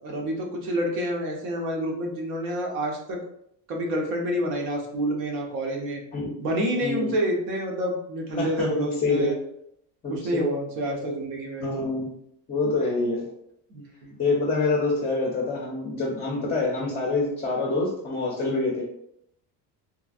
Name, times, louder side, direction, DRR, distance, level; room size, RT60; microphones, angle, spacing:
voice 1, 0.0-3.2 3.7-6.0 6.4-9.4 10.1-11.7 13.7-14.2, equal, 85° right, 0 dB, 1.0 m, -28 dB
voice 2, 6.8-7.1 8.4-8.7 9.0-9.3 10.0-10.5 11.6-12.1 12.5-13.3 14.2-18.8, left 3 dB, 20° left, -3 dB, 0.4 m, -26 dB
3.1 x 2.5 x 2.4 m, 0.73 s
cardioid pair, 150°, 42 cm